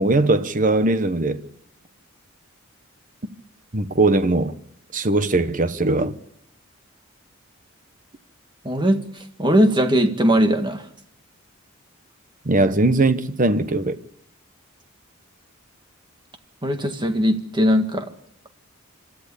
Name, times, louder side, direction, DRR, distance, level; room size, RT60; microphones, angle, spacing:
voice 1, 0.0-1.4 3.7-4.5 4.9-6.1 12.4-13.9, right 2 dB, 40° right, 1.1 m, -20 dB
voice 2, 8.6-9.1 9.4-10.8 16.6-18.1, equal, 20° right, 1.8 m, -19 dB
26.0 x 13.5 x 8.6 m
head